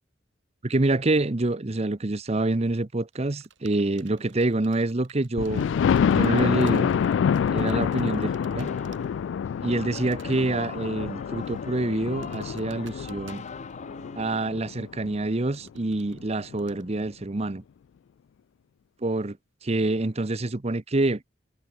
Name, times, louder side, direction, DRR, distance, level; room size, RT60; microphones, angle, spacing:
voice 1, 0.6-5.6 6.1-6.9 7.5-8.7 9.6-13.4 14.1-17.6 19.0-19.4 19.6-21.2, right 2 dB, 35° right, 0.8 m, -26 dB
sound 1, 3.1-9.1 9.3-9.7 10.0-10.5 10.8-11.1 11.4-14.0 14.4-14.5 15.4-16.8, right 6 dB, 90° right, 7.8 m, -55 dB
Thunder, 5.4-15.1 15.7-15.8 16.2-16.3 16.5-16.6, left 7 dB, 80° left, 0.3 m, -27 dB
sound 2, 5.5-14.5, left 3 dB, 40° left, 0.8 m, -41 dB
head